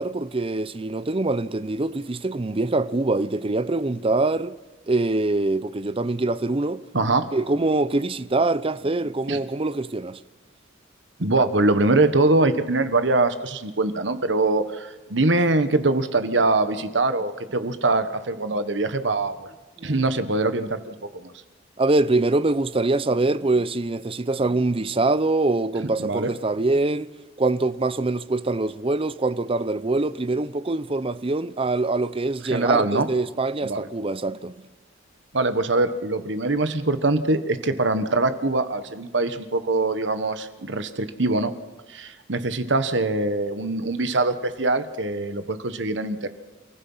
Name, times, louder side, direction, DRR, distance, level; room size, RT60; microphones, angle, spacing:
voice 1, 0.0-4.6 4.9-6.8 7.3-10.2 19.8-20.0 21.8-27.1 27.4-34.6, right 2 dB, 30° right, 0.6 m, -24 dB
voice 2, 6.9-7.3 9.3-9.4 11.2-19.5 19.8-21.3 26.0-26.3 32.5-33.1 33.6-33.9 35.3-41.5 41.9-46.3, right 2 dB, 65° right, 1.3 m, -23 dB
29.5 x 15.5 x 5.7 m
head